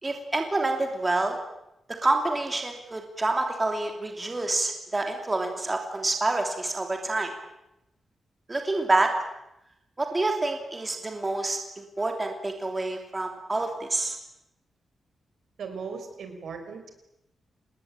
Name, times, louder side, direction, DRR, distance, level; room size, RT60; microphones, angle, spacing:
voice 1, 0.0-1.4 2.0-7.3 8.5-9.1 10.0-14.2, right 2 dB, 20° right, 4 dB, 3.0 m, -27 dB
voice 2, 15.6-16.9, right 5 dB, 70° right, 7 dB, 5.5 m, -37 dB
28.0 x 20.0 x 9.0 m, 0.86 s
wide cardioid pair, 160°, 0 cm